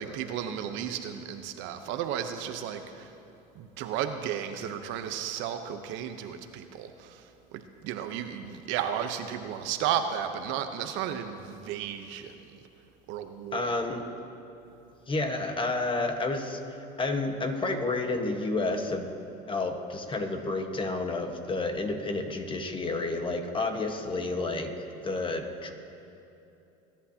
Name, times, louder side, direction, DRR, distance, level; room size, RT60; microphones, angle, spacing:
voice 1, 0.0-3.1 3.5-12.4 13.1-13.7, right 9 dB, 65° right, 7 dB, 0.9 m, -34 dB
voice 2, 13.5-14.0 15.1-19.1 19.5-24.7 25.0-25.7, left 2 dB, 25° left, 5 dB, 1.3 m, -30 dB
22.5 x 10.5 x 2.9 m, 2.9 s
supercardioid pair, 100°, 21 cm